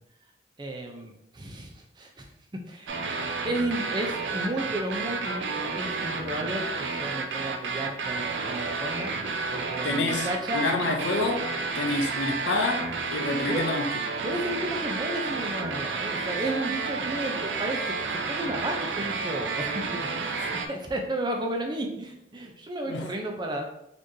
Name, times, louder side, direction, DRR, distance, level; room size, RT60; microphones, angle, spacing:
voice 1, 0.6-2.3 2.7-3.0 3.4-9.1 9.5-10.7 13.5-13.7 14.2-23.7, right 1 dB, 25° right, 0.5 m, -33 dB
sound 1, 2.9-20.7, right 4 dB, 85° right, 0.5 m, -31 dB
voice 2, 9.8-13.9 20.4-20.5 22.8-23.1, left 2 dB, 90° left, 0.6 m, -28 dB
4.2 x 3.1 x 2.6 m
head